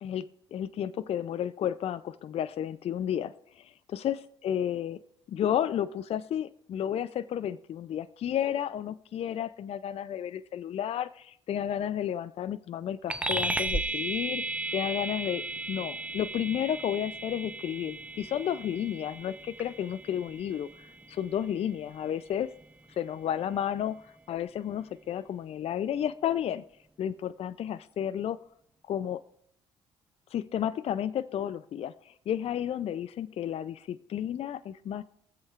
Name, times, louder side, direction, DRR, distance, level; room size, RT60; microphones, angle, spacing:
voice 1, 0.0-5.0 5.3-14.4 14.7-22.5 23.0-26.6 27.0-28.4 28.9-29.2 30.3-35.0, left 10 dB, 50° left, 15 dB, 0.4 m, -32 dB
sound 1, 13.1-22.9, right 2 dB, 10° right, 0.6 m, -36 dB
23.0 x 7.9 x 2.4 m, 0.68 s
hypercardioid pair, 55°, 13 cm